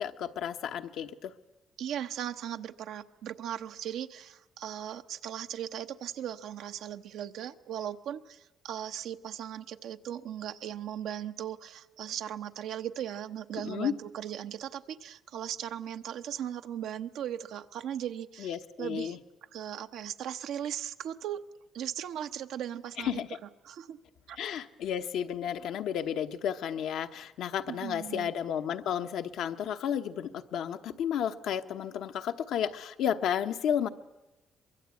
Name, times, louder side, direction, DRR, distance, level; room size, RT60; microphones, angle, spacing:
voice 1, 0.0-1.3 13.6-13.9 18.4-19.2 23.0-23.3 24.4-33.9, left 9 dB, 80° left, 7 dB, 1.0 m, -32 dB
voice 2, 1.8-19.2 19.5-21.4 21.7-23.2 23.6-24.0 24.3-24.4 27.7-28.3, right 10 dB, 80° right, 8 dB, 0.9 m, -38 dB
23.5 x 22.5 x 8.4 m, 1.0 s
cardioid pair, 90°, 0 cm